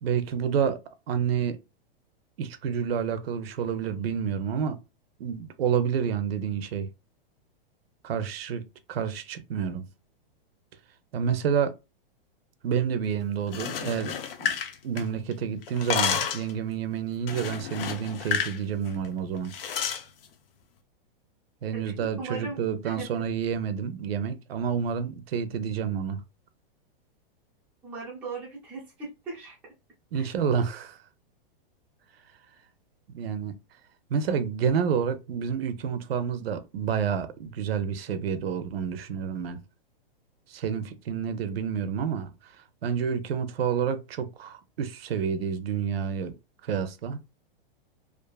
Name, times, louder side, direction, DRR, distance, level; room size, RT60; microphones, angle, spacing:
voice 1, 0.0-0.8 1.1-1.6 2.4-4.8 5.2-6.9 8.0-9.9 11.1-11.7 12.6-14.5 14.8-19.5 21.6-26.2 30.1-31.0 33.1-33.6 34.1-39.6 40.5-42.3 42.8-46.3 46.6-47.2, right 7 dB, 80° right, 0.6 m, -29 dB
sound 1, 13.4-15.3 15.6-16.5 17.3-18.6 18.9-19.1 19.5-20.0, left 7 dB, 70° left, 0.6 m, -30 dB
voice 2, 21.7-23.2 27.8-29.7 30.1-30.3, right 3 dB, 5° right, 0.4 m, -39 dB
2.5 x 2.3 x 2.3 m
supercardioid pair, 170°, 29 cm